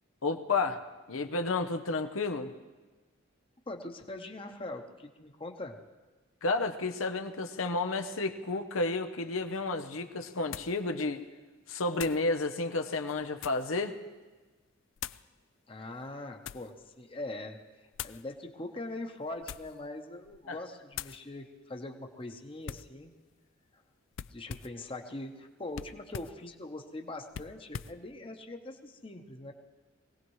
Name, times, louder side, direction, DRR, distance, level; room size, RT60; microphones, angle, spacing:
voice 1, 0.2-2.5 6.4-11.2 11.7-13.9 20.5-20.6, left 3 dB, 85° left, 6 dB, 0.8 m, -31 dB
voice 2, 3.7-5.8 15.7-17.6 18.0-23.1 24.3-29.5, left 2 dB, 25° left, 4 dB, 0.9 m, -42 dB
sound 1, 9.4-9.5 10.5-10.8 11.9-12.3 13.0-13.7 15.0-15.3 16.0-16.7 17.9-18.2 19.3-19.8 20.2-20.5 20.9-21.2 22.6-22.9 24.1-24.8 25.7-26.4 27.3-28.0, left 9 dB, 70° left, 0.4 m, -43 dB
23.5 x 17.5 x 3.2 m, 1.3 s
head